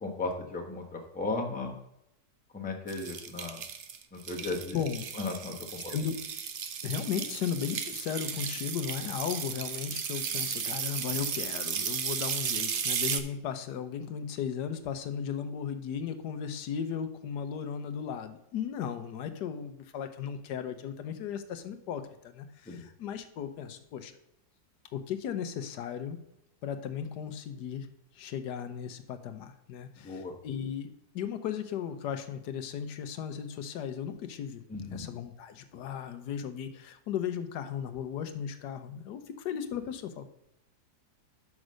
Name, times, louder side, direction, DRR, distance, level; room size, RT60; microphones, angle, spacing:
voice 1, 0.0-1.7 2.5-3.6 4.1-4.8 5.1-5.9 22.7-22.8 30.0-30.3 34.7-35.0, left 3 dB, 5° left, 0 dB, 0.8 m, -35 dB
sound 1, 2.9-13.2, right 7 dB, 70° right, 0.5 m, -35 dB
voice 2, 4.7-5.1 5.8-6.2 6.8-24.2 24.9-26.2 26.6-27.9 28.1-30.9 31.1-34.6 34.9-40.3, left 8 dB, 80° left, 9 dB, 1.3 m, -36 dB
6.1 x 5.4 x 6.3 m, 0.82 s
omnidirectional pair, 1.8 m